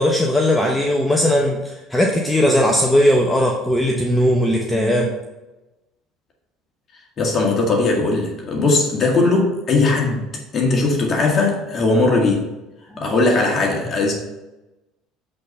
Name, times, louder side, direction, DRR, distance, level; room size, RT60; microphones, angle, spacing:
voice 1, 0.0-5.1 9.8-9.9, equal, 10° left, 0 dB, 1.1 m, -18 dB
voice 2, 7.2-12.5 13.0-14.1, left 3 dB, 40° left, 0 dB, 1.8 m, -19 dB
7.8 x 4.2 x 5.5 m, 1.0 s
hypercardioid pair, 70°, 0 cm